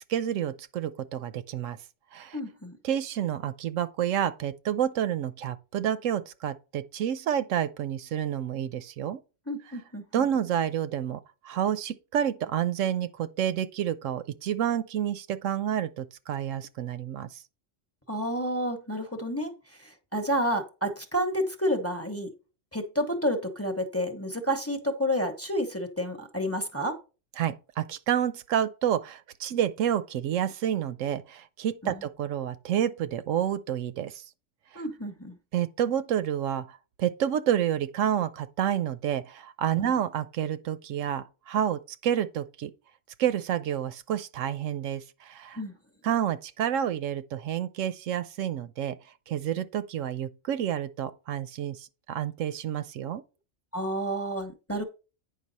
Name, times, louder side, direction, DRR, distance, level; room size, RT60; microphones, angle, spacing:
voice 1, 0.1-1.8 2.1-2.4 2.8-9.2 10.1-17.4 27.4-34.2 34.7-34.8 35.5-42.7 43.2-45.6 46.0-49.0 49.3-53.2, right 10 dB, 75° right, 0.9 m, -29 dB
voice 2, 2.3-2.8 9.5-10.3 18.1-19.5 19.8-22.3 22.7-27.0 31.8-32.0 34.7-35.4 39.8-39.9 45.6-45.8 53.7-54.8, equal, 10° left, 1.0 m, -30 dB
9.3 x 5.5 x 4.1 m
omnidirectional pair, 1.3 m